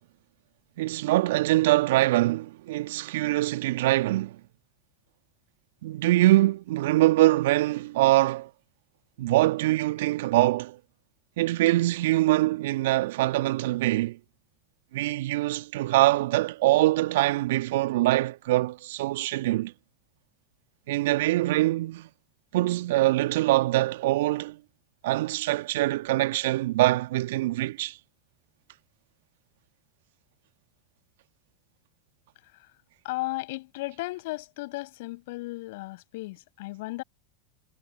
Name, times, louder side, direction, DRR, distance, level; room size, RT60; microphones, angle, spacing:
voice 1, 0.8-4.4 5.8-8.5 9.2-10.8 11.4-14.2 14.9-19.7 20.9-22.1 22.5-24.6 25.0-28.0, right 17 dB, 65° right, 1.3 m, -23 dB
voice 2, 33.0-37.0, left 21 dB, 65° left, 7.4 m, -35 dB
hypercardioid pair, 85°, 0 cm